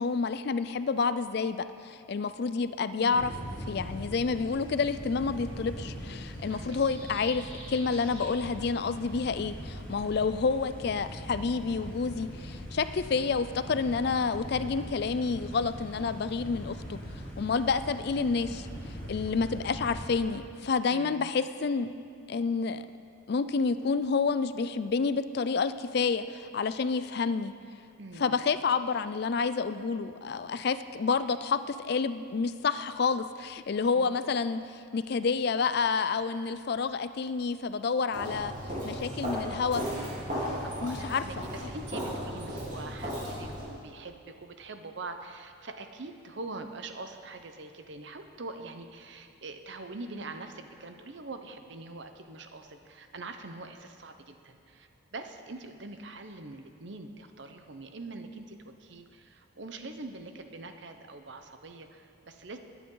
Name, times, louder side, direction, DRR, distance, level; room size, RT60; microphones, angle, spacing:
voice 1, 0.0-3.3 3.7-17.0 17.4-18.7 19.1-21.9 22.3-22.8 23.3-27.5 28.2-34.6 34.9-38.5 38.8-39.8 40.8-41.2, left 5 dB, 50° left, 13 dB, 0.4 m, -29 dB
voice 2, 3.0-3.4 6.5-7.1 20.9-21.4 28.0-28.4 33.9-34.2 40.6-62.6, right 3 dB, 60° right, 7 dB, 0.8 m, -44 dB
sound 1, 3.1-20.3, equal, 10° left, 3.4 m, -41 dB
sound 2, 5.2-8.3, left 1 dB, 30° left, 3.4 m, -49 dB
Walk footsteps, 38.1-43.7, equal, 40° right, 3.6 m, -35 dB
20.0 x 9.2 x 3.9 m, 2.3 s
head